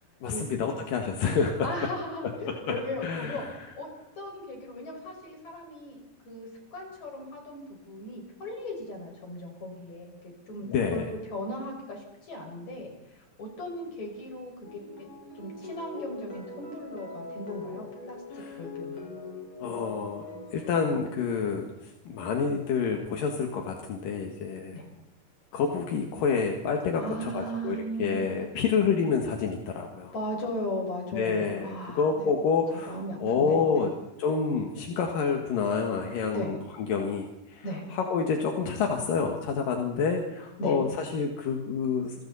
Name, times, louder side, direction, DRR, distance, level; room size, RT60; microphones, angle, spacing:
voice 1, 0.2-1.7 2.5-2.8 3.0-3.6 10.7-11.1 18.3-18.6 19.6-20.3 20.5-24.8 25.5-30.1 31.1-33.9 34.2-37.6 37.9-42.2, left 5 dB, 85° left, 2 dB, 3.5 m, -28 dB
voice 2, 1.6-3.5 3.8-3.9 4.2-6.0 6.3-12.9 13.4-14.7 15.4-18.2 18.6-19.0 24.7-24.9 26.9-28.5 30.1-32.3 32.7-33.9 36.3-36.5 37.6-37.8 40.6-40.8, equal, 55° left, 1 dB, 7.0 m, -37 dB
sound 1, 14.6-20.8, left 3 dB, 40° left, 6.1 m, -42 dB
28.0 x 25.0 x 4.2 m, 0.93 s
omnidirectional pair, 3.8 m